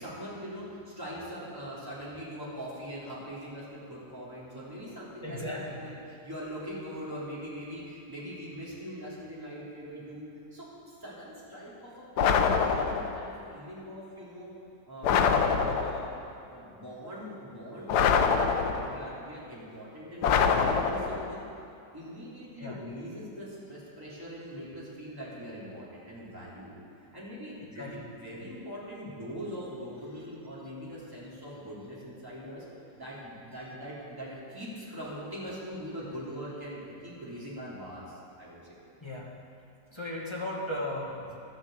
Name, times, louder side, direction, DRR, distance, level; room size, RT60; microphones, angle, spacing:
voice 1, 0.0-14.5 14.9-21.4 21.9-26.7 27.1-32.6 33.0-38.6, equal, 10° right, -8 dB, 3.3 m, -42 dB
voice 2, 5.2-5.9 22.6-22.8 27.7-28.0 39.0-39.3 39.9-41.4, left 1 dB, 15° left, -3 dB, 1.4 m, -36 dB
sound 1, 12.2-13.2 15.0-16.1 17.9-19.1 20.2-21.3, left 6 dB, 70° left, 1.2 m, -25 dB
12.0 x 7.3 x 7.9 m, 2.6 s
omnidirectional pair, 1.9 m